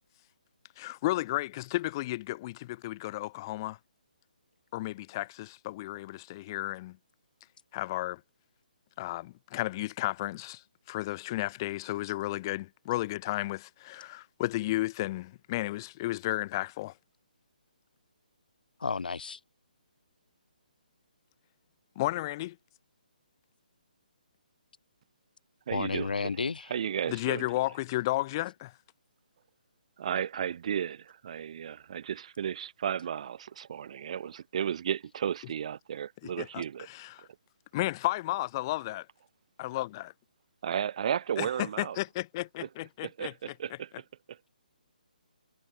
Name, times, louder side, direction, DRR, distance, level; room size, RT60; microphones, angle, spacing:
voice 1, 0.8-3.8 4.7-7.0 7.7-8.2 9.0-16.9 22.0-22.6 27.1-28.7 36.2-37.3 37.7-39.1 39.6-40.1 41.4-42.4 42.8-43.5, left 17 dB, 25° left, 1.8 m, -33 dB
voice 2, 18.8-19.4 25.7-26.7, left 5 dB, 75° left, 4.2 m, -32 dB
voice 3, 25.7-26.3 26.7-27.4 30.0-36.9 40.6-42.0 43.2-44.4, right 8 dB, 45° right, 4.2 m, -34 dB
hypercardioid pair, 160°, 5 cm